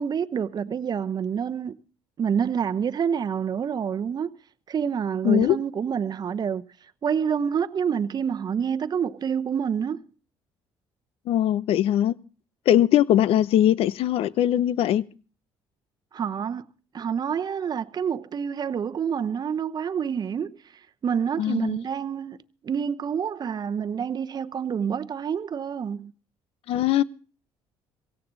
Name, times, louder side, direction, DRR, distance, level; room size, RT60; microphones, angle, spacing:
voice 1, 0.0-1.8 2.2-4.3 4.7-6.6 7.0-10.0 16.1-16.6 16.9-20.6 21.0-22.4 22.6-26.1, right 7 dB, 40° right, 0.9 m, -27 dB
voice 2, 5.2-5.6 11.3-12.1 12.7-15.0 21.4-21.8 26.7-27.0, left 11 dB, 70° left, 0.8 m, -21 dB
17.0 x 16.0 x 4.0 m
cardioid pair, 90°, 10 cm